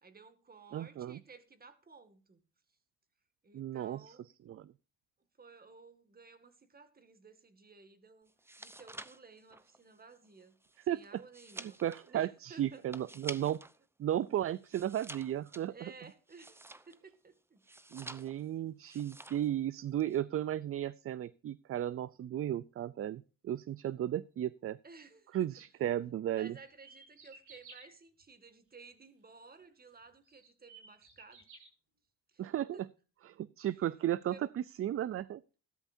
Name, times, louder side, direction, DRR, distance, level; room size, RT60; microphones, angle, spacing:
voice 1, 0.0-2.4 3.4-4.3 5.4-8.3 8.6-10.6 10.9-11.8 12.1-12.8 15.7-17.6 18.2-18.4 24.8-25.5 26.3-31.5 32.3-32.4 32.7-32.8 34.2-34.4, right 4 dB, 30° right, 2.1 m, -56 dB
voice 2, 0.7-1.2 3.5-4.2 4.5-4.7 10.9-11.2 11.6-13.6 14.0-15.9 17.9-24.8 25.3-26.6 32.4-32.8 33.3-35.4, right 11 dB, 45° right, 0.5 m, -35 dB
sound 1, 8.3-13.8 14.1-17.1 17.6-18.5 18.8-19.5 19.8-20.2, right 2 dB, 10° right, 0.7 m, -49 dB
sound 2, 26.7-27.9 29.6-29.7 30.2-31.7, right 4 dB, 80° right, 6.9 m, -55 dB
14.5 x 12.5 x 2.7 m
cardioid pair, 90°, 30 cm